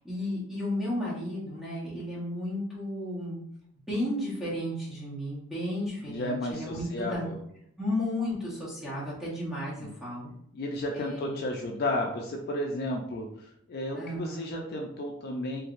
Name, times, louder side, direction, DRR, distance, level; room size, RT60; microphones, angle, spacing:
voice 1, 0.0-3.4 3.9-7.3 7.8-10.3 10.9-11.4 13.9-14.5, left 1 dB, ahead, -7 dB, 1.0 m, -33 dB
voice 2, 6.0-7.4 9.8-9.9 10.5-15.6, left 1 dB, 45° left, 0 dB, 0.4 m, -33 dB
3.2 x 2.7 x 2.4 m, 0.74 s
head